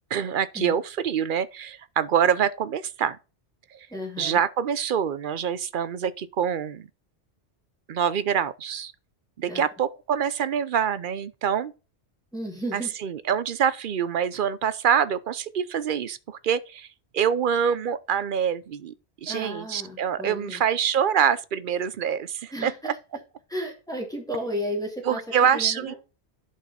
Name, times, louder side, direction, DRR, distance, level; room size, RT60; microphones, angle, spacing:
voice 1, 0.1-3.2 3.7-3.9 4.2-6.9 7.9-8.9 9.4-11.7 12.7-16.9 17.1-18.9 19.2-22.7 25.0-25.9, right 8 dB, 55° right, 0.7 m, -25 dB
voice 2, 3.9-4.4 9.5-9.6 12.3-12.9 19.3-20.6 22.5-22.7 23.5-26.0, equal, 5° left, 2.4 m, -33 dB
11.0 x 4.7 x 4.2 m
omnidirectional pair, 1.1 m